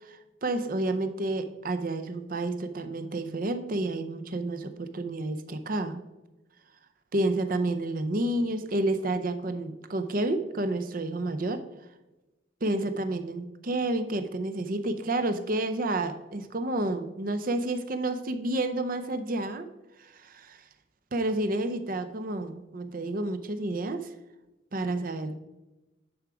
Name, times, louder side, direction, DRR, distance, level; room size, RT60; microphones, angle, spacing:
voice 1, 0.0-6.0 7.1-11.6 12.6-19.7 20.0-20.6 21.1-24.1 24.7-25.3, right 2 dB, 45° right, 9 dB, 0.6 m, -30 dB
10.5 x 4.7 x 4.9 m, 1.0 s
head